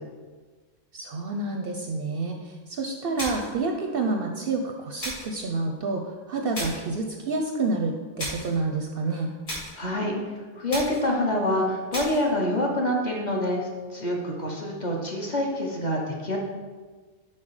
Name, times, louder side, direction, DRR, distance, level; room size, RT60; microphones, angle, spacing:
voice 1, 0.9-6.0 6.3-9.3, right 3 dB, 60° right, 3 dB, 0.6 m, -28 dB
sound 1, 3.2-3.6 5.0-5.4 6.5-6.9 8.2-8.6 9.5-9.8 10.7-11.1 11.9-12.3, equal, 90° left, 2.6 m, -34 dB
voice 2, 9.7-10.1 10.6-16.4, left 1 dB, 40° left, -1 dB, 1.0 m, -26 dB
5.8 x 4.3 x 4.7 m, 1.4 s
omnidirectional pair, 1.3 m